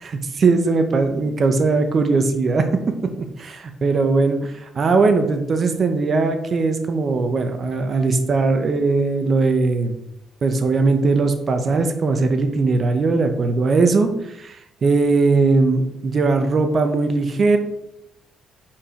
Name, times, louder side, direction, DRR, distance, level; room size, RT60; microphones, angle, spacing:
voice 1, 0.0-2.7 3.4-10.0 10.4-17.6, right 3 dB, 45° right, 6 dB, 1.0 m, -19 dB
5.8 x 4.9 x 5.0 m, 0.82 s
cardioid pair, 90°, 0 cm